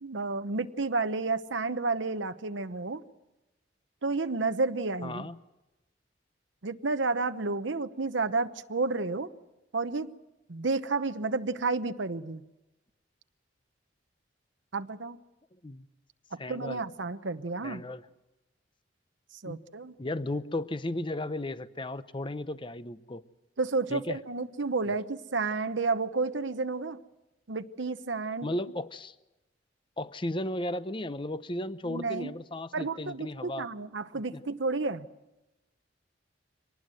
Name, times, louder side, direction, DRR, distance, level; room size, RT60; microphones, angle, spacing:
voice 1, 0.0-3.0 4.0-5.3 6.6-9.3 9.7-10.1 10.5-12.4 14.7-15.2 16.5-17.8 19.4-19.9 23.6-27.0 27.5-28.5 31.8-32.3 32.7-35.1, right 3 dB, 90° right, 10 dB, 1.0 m, -31 dB
voice 2, 5.0-5.4 15.6-15.9 16.4-16.8 17.6-18.0 19.4-19.6 20.0-23.2 23.9-24.2 28.4-29.1 30.0-33.7 34.1-34.4, left 1 dB, 25° left, 13 dB, 0.7 m, -35 dB
25.0 x 19.5 x 7.8 m, 1.0 s
head